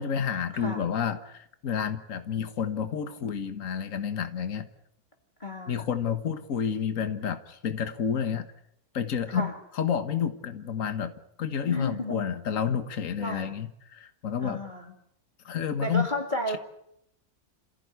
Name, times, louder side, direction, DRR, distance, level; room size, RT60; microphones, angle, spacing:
voice 1, 0.0-4.7 5.7-8.5 8.9-11.1 11.4-14.6 15.5-16.1, left 7 dB, 60° left, 9 dB, 1.8 m, -30 dB
voice 2, 5.4-5.8 9.3-9.5 11.7-12.2 13.2-13.5 14.4-14.9 15.8-16.6, left 1 dB, 30° left, 3 dB, 2.6 m, -32 dB
27.5 x 15.5 x 9.5 m, 0.75 s
omnidirectional pair, 1.6 m